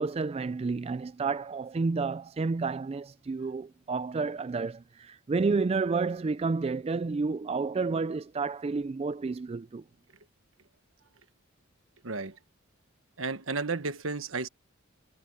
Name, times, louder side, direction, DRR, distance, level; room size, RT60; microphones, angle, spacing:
voice 1, 0.0-9.8, right 4 dB, 30° right, 0.3 m, -30 dB
voice 2, 12.0-12.4 13.2-14.5, right 3 dB, 75° right, 1.4 m, -32 dB
head